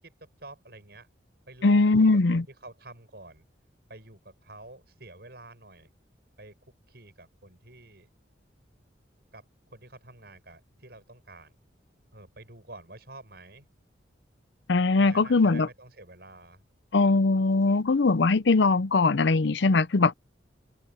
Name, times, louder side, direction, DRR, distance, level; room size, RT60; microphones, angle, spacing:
voice 1, 0.0-1.1 1.5-3.4 3.9-5.9 6.4-6.6 6.9-8.1 9.3-11.6 12.1-13.7 15.0-16.6, right 2 dB, 55° right, 7.6 m, -48 dB
voice 2, 1.6-2.4 14.7-15.7 16.9-20.1, left 3 dB, 70° left, 0.6 m, -21 dB
head